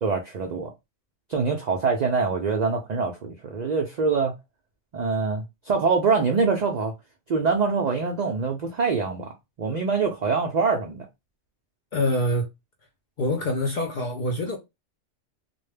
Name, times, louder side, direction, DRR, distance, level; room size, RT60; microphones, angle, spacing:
voice 1, 0.0-0.7 1.3-4.3 4.9-6.9 7.3-9.3 9.6-11.1, right 4 dB, 85° right, 0.3 m, -24 dB
voice 2, 11.9-12.5 13.2-14.6, left 1 dB, 60° left, 0.5 m, -25 dB
2.3 x 2.1 x 3.2 m
omnidirectional pair, 1.3 m